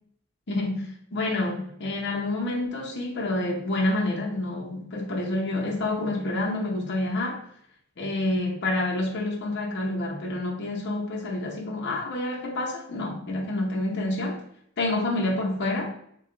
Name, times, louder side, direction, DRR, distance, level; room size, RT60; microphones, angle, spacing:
voice 1, 0.5-7.4 8.0-14.4 14.8-15.9, left 2 dB, 55° left, -1 dB, 0.8 m, -28 dB
3.8 x 2.3 x 3.2 m, 0.69 s
head